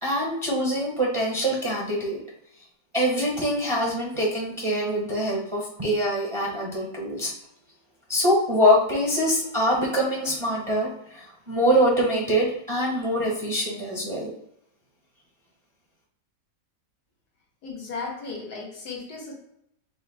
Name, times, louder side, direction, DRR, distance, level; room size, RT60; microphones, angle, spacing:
voice 1, 0.0-2.2 2.9-7.3 8.1-14.3, equal, 25° right, -4 dB, 0.7 m, -24 dB
voice 2, 17.6-19.3, left 4 dB, 75° left, -2 dB, 1.8 m, -35 dB
5.1 x 2.0 x 4.0 m, 0.75 s
omnidirectional pair, 1.7 m